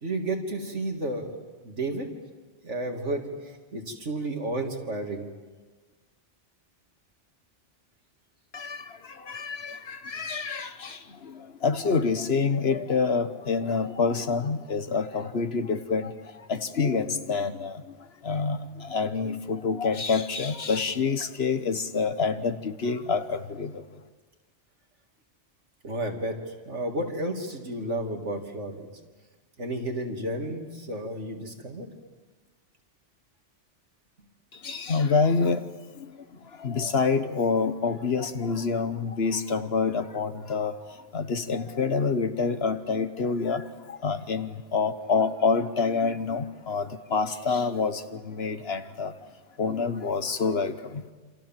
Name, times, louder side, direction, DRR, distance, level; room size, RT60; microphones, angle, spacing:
voice 1, 0.0-2.1 2.6-3.3 3.7-5.3 25.8-26.4 26.7-28.9 29.6-31.9, right 1 dB, 85° right, 3 dB, 3.2 m, -32 dB
voice 2, 9.3-10.7 11.6-16.1 16.5-17.7 18.3-18.6 18.9-22.5 22.8-23.7 34.6-35.6 36.6-40.7 41.1-43.6 44.0-46.8 47.1-47.9 48.4-49.1 49.6-50.7, left 5 dB, 60° left, 10 dB, 1.4 m, -26 dB
28.0 x 27.0 x 7.6 m, 1.4 s
omnidirectional pair, 1.2 m